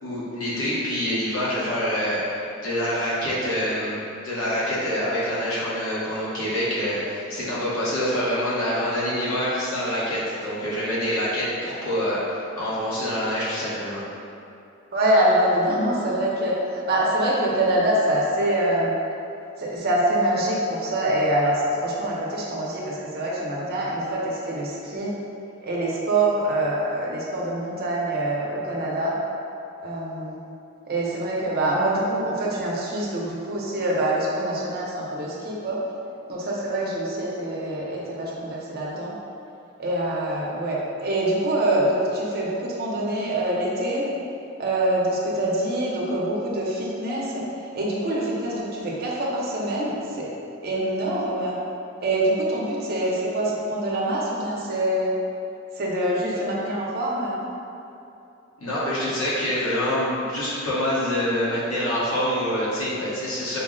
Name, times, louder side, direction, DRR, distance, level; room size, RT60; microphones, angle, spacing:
voice 1, 0.0-14.0 58.6-63.6, equal, 75° left, -9 dB, 1.1 m, -26 dB
voice 2, 14.9-18.9 19.6-25.1 25.6-29.1 29.8-30.4 30.9-35.8 36.3-39.1 39.8-44.0 44.6-47.4 47.7-50.3 50.6-51.6 52.0-55.1 55.8-57.4, right 1 dB, 50° right, -4 dB, 0.7 m, -25 dB
4.5 x 2.1 x 3.7 m, 2.7 s
head